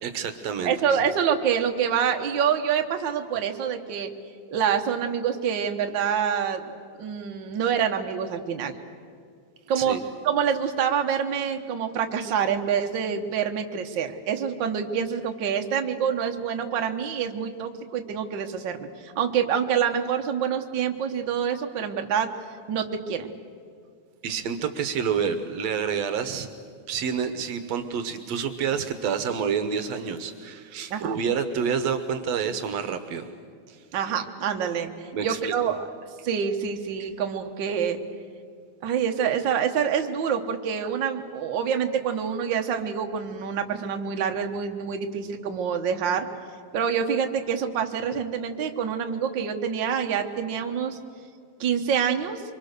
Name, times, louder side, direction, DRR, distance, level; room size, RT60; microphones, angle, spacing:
voice 1, 0.0-0.7 9.8-10.0 24.2-26.5 26.9-33.3 33.7-33.8 35.1-35.8, right 7 dB, 70° right, 9 dB, 2.1 m, -28 dB
voice 2, 0.6-4.1 4.5-6.7 7.0-8.8 9.7-10.0 10.2-22.3 22.7-23.3 30.9-31.1 33.9-34.9 35.2-35.8 36.2-38.0 38.8-46.2 46.7-51.0 51.6-52.4, right 7 dB, 50° right, 5 dB, 1.5 m, -26 dB
24.5 x 24.5 x 6.7 m, 2.2 s
omnidirectional pair, 3.4 m